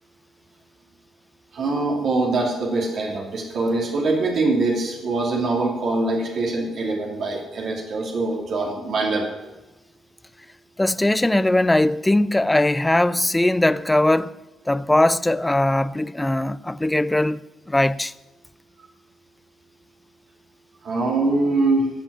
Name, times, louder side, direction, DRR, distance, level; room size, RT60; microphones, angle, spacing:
voice 1, 1.5-9.3 20.8-21.9, right 2 dB, 60° right, 3.0 m, -23 dB
voice 2, 10.8-14.4 14.7-17.4 17.7-18.1, left 1 dB, 10° left, 0.5 m, -20 dB
15.5 x 5.4 x 9.7 m
cardioid pair, 90°, 0 cm